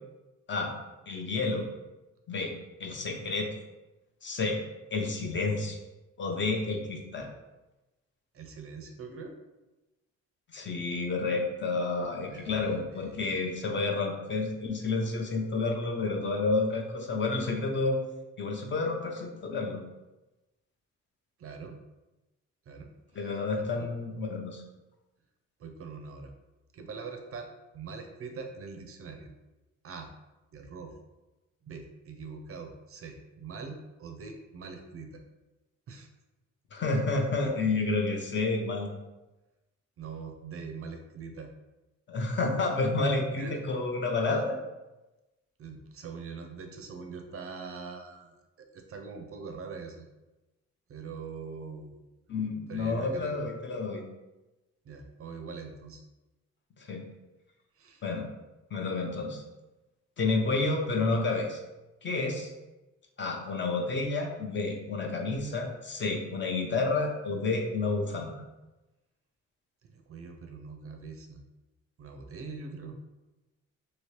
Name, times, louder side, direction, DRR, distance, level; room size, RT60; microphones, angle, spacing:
voice 1, 1.1-1.7 2.3-2.5 2.8-3.5 4.2-4.6 4.9-5.8 6.2-7.3 10.5-18.0 18.4-19.8 23.2-24.6 36.7-38.9 42.1-44.6 52.3-54.0 56.8-57.0 58.0-58.3 58.7-59.4 60.2-61.6 62.0-62.5 63.2-68.3, left 3 dB, 40° left, 2 dB, 0.6 m, -30 dB
voice 2, 8.3-9.4 12.2-13.4 21.4-21.8 22.7-23.9 25.6-26.3 26.7-27.5 27.7-29.3 29.8-30.1 30.5-30.9 31.6-35.2 35.9-36.1 40.0-41.5 43.4-43.6 45.6-50.0 50.9-52.0 52.7-53.4 54.8-56.0 57.8-58.0 69.8-71.4 72.0-73.0, right 5 dB, 50° right, 5 dB, 0.5 m, -43 dB
2.9 x 2.8 x 3.1 m, 1.0 s
cardioid pair, 90°, 30 cm